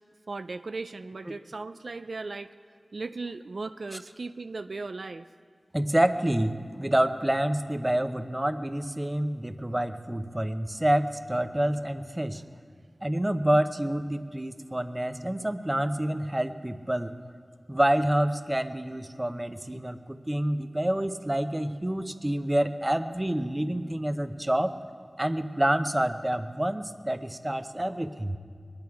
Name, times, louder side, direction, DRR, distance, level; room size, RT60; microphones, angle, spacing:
voice 1, 0.3-2.5 2.9-5.3, right 3 dB, 80° right, 10 dB, 0.3 m, -37 dB
voice 2, 5.7-12.4 13.0-17.1 17.7-24.7 25.2-28.4, right 1 dB, 20° right, 9 dB, 0.7 m, -27 dB
22.0 x 10.5 x 4.7 m, 2.1 s
wide cardioid pair, 65°, 0 cm